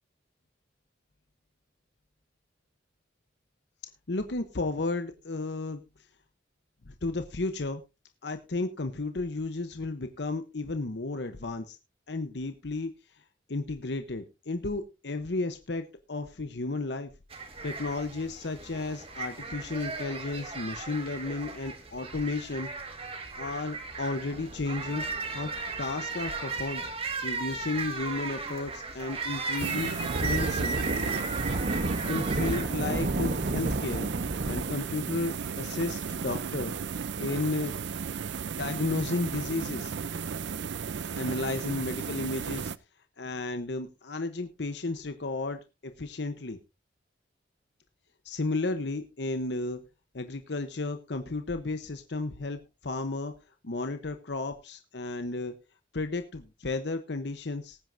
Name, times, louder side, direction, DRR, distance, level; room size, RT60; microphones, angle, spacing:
voice 1, 4.1-5.8 6.9-7.8 8.2-11.8 12.1-13.2 13.5-17.1 17.4-22.7 23.4-25.0 25.3-25.5 25.8-26.8 27.2-29.9 30.2-30.8 32.1-34.1 34.5-36.7 37.2-37.7 38.5-39.9 41.2-42.7 43.2-46.6 48.2-49.8 50.1-53.3 53.6-55.5 55.9-57.8, left 3 dB, 65° left, 8 dB, 0.9 m, -33 dB
sound 1, 17.3-32.6, right 4 dB, 30° right, 1.8 m, -36 dB
Thunder Claps Combination, 24.3-26.0 29.9-34.7, right 2 dB, 50° right, 0.9 m, -32 dB
sound 2, 29.5-42.8, right 6 dB, 70° right, 0.5 m, -35 dB
19.0 x 9.3 x 2.6 m, 0.27 s
head